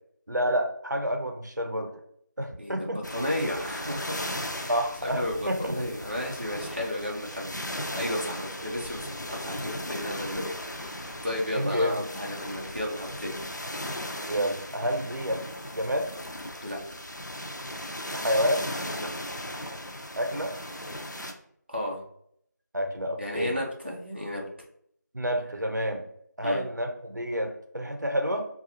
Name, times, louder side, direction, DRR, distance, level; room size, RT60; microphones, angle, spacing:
voice 1, 0.3-1.9 2.4-3.0 4.7-5.7 11.5-12.0 14.3-15.4 15.7-16.1 18.1-18.6 20.2-20.5 22.7-23.5 25.1-26.0 26.4-28.4, equal, 75° right, 4 dB, 0.7 m, -29 dB
voice 2, 2.6-4.2 4.5-4.7 5.0-7.5 7.9-10.4 10.9-13.3 16.6-16.8 18.9-19.1 21.7-22.0 23.2-24.4 26.4-26.6, left 1 dB, 35° right, -2 dB, 0.7 m, -33 dB
sound 1, 3.0-21.3, left 1 dB, 75° left, 0.5 m, -37 dB
4.0 x 2.4 x 2.7 m, 0.68 s
figure-of-eight pair, 180°, 10 cm